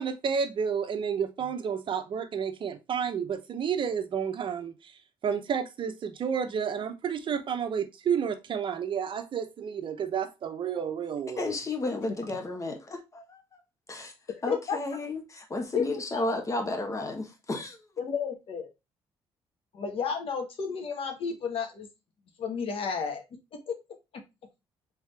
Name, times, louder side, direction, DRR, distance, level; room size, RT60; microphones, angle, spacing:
voice 1, 0.0-4.7 5.2-11.4, right 7 dB, 50° right, 0.7 m, -30 dB
voice 2, 11.4-13.6 13.9-14.1 14.4-17.8, left 2 dB, 30° left, 1.3 m, -33 dB
voice 3, 14.5-14.8 15.7-16.4 18.0-18.7 19.7-21.9 22.4-23.2 23.5-23.8, left 6 dB, 60° left, 1.3 m, -32 dB
3.6 x 3.5 x 3.3 m
cardioid pair, 80°, 11 cm